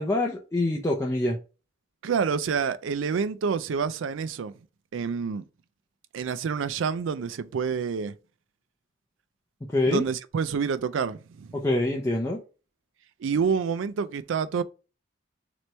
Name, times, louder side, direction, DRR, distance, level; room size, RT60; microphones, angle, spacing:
voice 1, 0.0-1.4 9.7-10.0 11.5-12.4, left 2 dB, 15° left, 0.4 m, -25 dB
voice 2, 2.0-4.5 4.9-5.4 6.1-8.1 9.9-11.5 13.2-14.6, right 6 dB, 80° right, 0.4 m, -28 dB
3.3 x 3.0 x 3.9 m
head